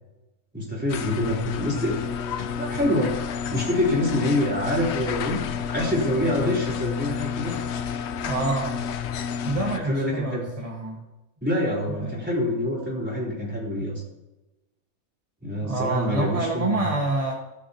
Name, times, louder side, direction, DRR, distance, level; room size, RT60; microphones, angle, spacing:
voice 1, 0.5-2.0 2.5-3.1 3.5-5.4 5.7-7.5 9.9-10.5 11.4-14.0 15.4-16.9, left 1 dB, 5° right, -5 dB, 3.8 m, -26 dB
sound 1, 0.9-9.8, left 7 dB, 60° left, 0.8 m, -30 dB
voice 2, 8.3-8.8 9.4-11.0 11.9-12.2 15.5-17.3, right 2 dB, 25° right, -1 dB, 1.2 m, -27 dB
19.5 x 6.6 x 2.9 m, 1.0 s
omnidirectional pair, 1.5 m